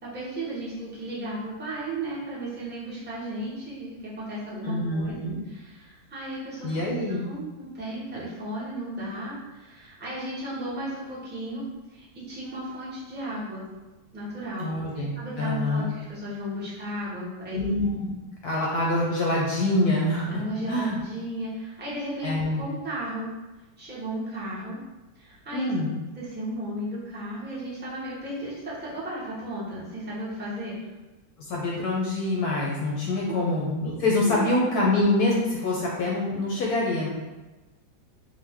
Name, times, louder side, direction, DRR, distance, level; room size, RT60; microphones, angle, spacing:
voice 1, 0.0-11.6 11.9-13.7 14.1-14.7 15.2-17.6 20.3-23.3 23.8-24.8 25.1-25.7 26.1-30.9 33.3-33.4 34.2-34.5, right 1 dB, 10° right, -8 dB, 0.5 m, -35 dB
voice 2, 4.6-5.4 6.6-7.3 14.6-15.9 17.5-18.1 18.4-20.4 20.7-21.0 22.2-22.6 25.5-26.0 31.5-37.1, left 2 dB, 70° left, -3 dB, 1.0 m, -25 dB
3.8 x 2.6 x 3.4 m, 1.1 s
omnidirectional pair, 2.1 m